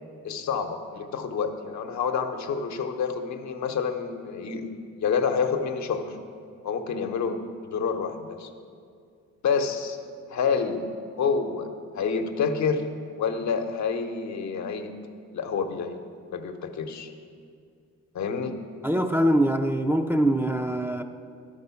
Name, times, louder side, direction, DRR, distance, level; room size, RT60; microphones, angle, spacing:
voice 1, 0.2-6.2 6.6-7.4 7.7-8.5 9.4-10.0 10.3-10.9 11.2-11.7 11.9-12.9 13.1-14.9 15.3-16.0 16.3-17.1 18.1-18.6, left 6 dB, 65° left, 6 dB, 0.9 m, -28 dB
voice 2, 18.8-21.0, right 1 dB, 10° right, 3 dB, 0.4 m, -23 dB
11.5 x 5.3 x 6.9 m, 2.3 s
cardioid pair, 90°, 30 cm